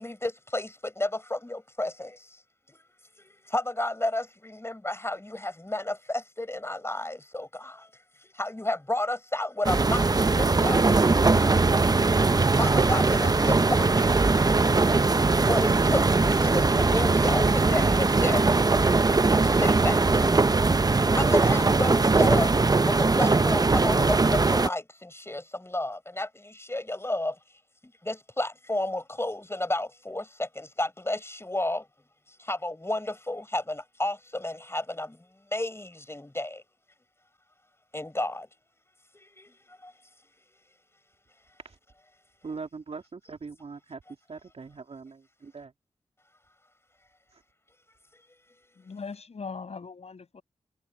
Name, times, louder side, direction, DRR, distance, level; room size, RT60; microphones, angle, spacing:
voice 1, 0.0-2.4 2.7-2.8 3.2-7.9 8.2-11.6 12.6-14.5 15.4-18.9 19.3-20.4 21.1-22.6 22.9-27.4 28.0-31.9 32.4-35.2 35.5-36.6 37.9-38.5 39.1-39.9, left 1 dB, 20° left, 5.3 m, -32 dB
sound 1, 9.6-24.7, right 3 dB, 35° right, 0.7 m, -21 dB
voice 2, 42.4-44.0 44.3-45.7 47.3-47.4, right 4 dB, 65° right, 3.0 m, -41 dB
voice 3, 48.8-50.4, left 5 dB, 70° left, 6.6 m, -40 dB
cardioid pair, 40°, 11 cm